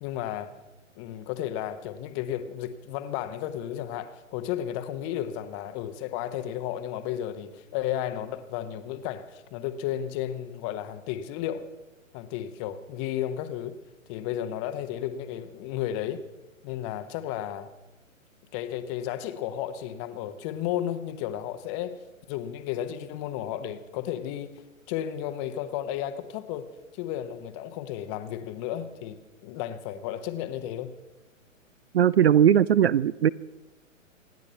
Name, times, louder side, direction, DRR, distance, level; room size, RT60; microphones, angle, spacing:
voice 1, 0.0-0.5 1.0-11.7 12.1-13.7 14.1-16.2 16.6-17.7 18.5-22.0 22.3-24.6 24.9-30.9, left 11 dB, 25° left, 11 dB, 0.9 m, -33 dB
voice 2, 31.9-33.3, right 9 dB, 50° right, 21 dB, 0.5 m, -19 dB
26.5 x 9.6 x 5.6 m, 1.0 s
figure-of-eight pair, 130°, 40 cm